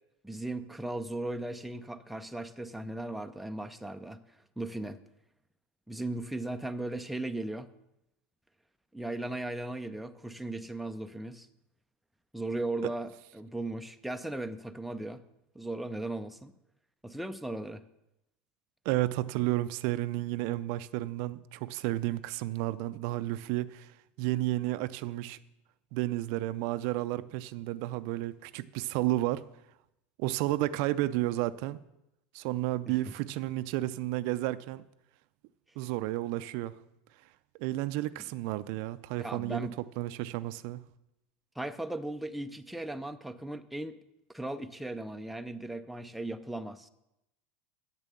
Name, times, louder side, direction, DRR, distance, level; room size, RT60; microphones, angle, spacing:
voice 1, 0.2-5.0 5.9-7.7 8.9-11.5 12.3-15.2 15.5-16.5 17.0-17.8 32.9-33.1 39.2-39.7 41.6-44.0 44.3-46.9, right 2 dB, ahead, 0.5 m, -37 dB
voice 2, 18.9-23.9 24.2-25.4 25.9-29.4 30.2-31.8 32.3-34.8 35.8-36.7 37.6-39.7 40.0-40.8, right 16 dB, 60° right, 0.4 m, -32 dB
8.2 x 7.1 x 6.8 m
supercardioid pair, 125°, 6 cm